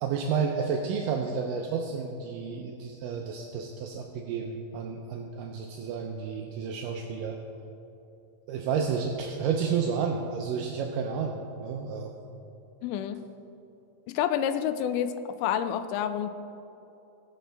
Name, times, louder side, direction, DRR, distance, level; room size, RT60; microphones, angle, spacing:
voice 1, 0.0-7.4 8.5-12.1, right 6 dB, 80° right, 2 dB, 2.2 m, -31 dB
voice 2, 12.8-13.2 14.1-16.3, left 9 dB, 80° left, 10 dB, 2.0 m, -29 dB
19.0 x 6.6 x 3.3 m, 2.9 s
omnidirectional pair, 3.9 m